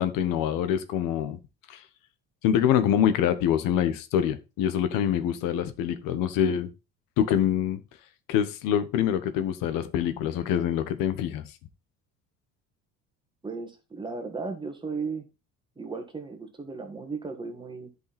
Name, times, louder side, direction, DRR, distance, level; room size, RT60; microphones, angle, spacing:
voice 1, 0.0-1.4 1.7-1.8 2.4-6.7 7.2-7.8 8.3-11.5, left 9 dB, 75° left, 1.3 m, -25 dB
voice 2, 13.4-15.3 15.8-17.9, right 4 dB, 15° right, 1.7 m, -35 dB
10.5 x 5.5 x 4.2 m
cardioid pair, 145°, 34 cm